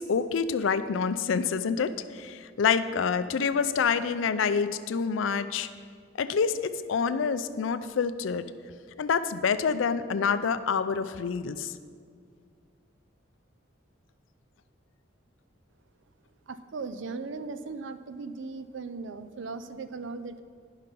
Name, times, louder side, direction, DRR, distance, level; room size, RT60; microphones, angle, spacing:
voice 1, 0.0-5.7 6.2-8.5 9.0-11.7, left 6 dB, 80° left, 13 dB, 0.4 m, -27 dB
voice 2, 16.5-20.4, right 4 dB, 70° right, 11 dB, 0.5 m, -38 dB
11.0 x 5.6 x 5.2 m, 2.1 s
head